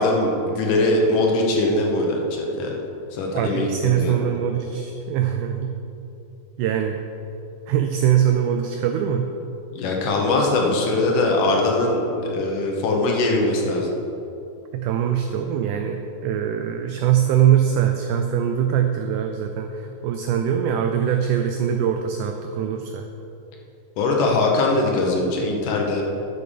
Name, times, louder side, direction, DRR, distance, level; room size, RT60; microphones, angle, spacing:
voice 1, 0.0-2.8 3.1-4.3 9.7-13.9 24.0-26.0, left 2 dB, 70° left, 0 dB, 2.5 m, -21 dB
voice 2, 3.3-5.7 6.6-7.0 7.7-9.3 14.7-23.1, right 9 dB, 90° right, 5 dB, 1.8 m, -22 dB
10.5 x 6.6 x 5.0 m, 2.9 s
omnidirectional pair, 4.2 m